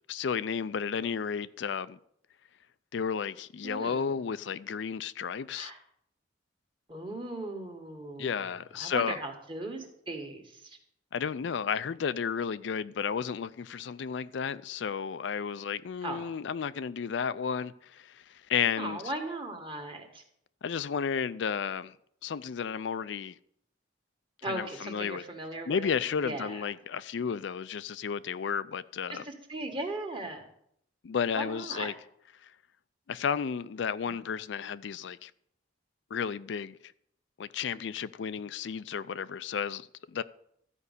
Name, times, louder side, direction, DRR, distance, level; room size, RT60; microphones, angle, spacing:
voice 1, 0.1-2.0 2.9-5.7 8.2-9.2 11.1-19.1 20.6-21.9 22.2-23.4 24.4-25.2 25.7-29.2 31.0-31.9 32.4-32.5 33.1-35.3 36.1-36.9 37.4-40.2, left 6 dB, 70° left, 0.4 m, -33 dB
voice 2, 3.6-4.1 5.5-5.8 6.9-8.4 8.8-10.8 16.0-16.3 18.8-20.2 24.4-25.9 26.2-26.6 29.1-30.5 31.3-31.9, right 2 dB, 25° right, 1.7 m, -38 dB
13.5 x 5.4 x 8.2 m
head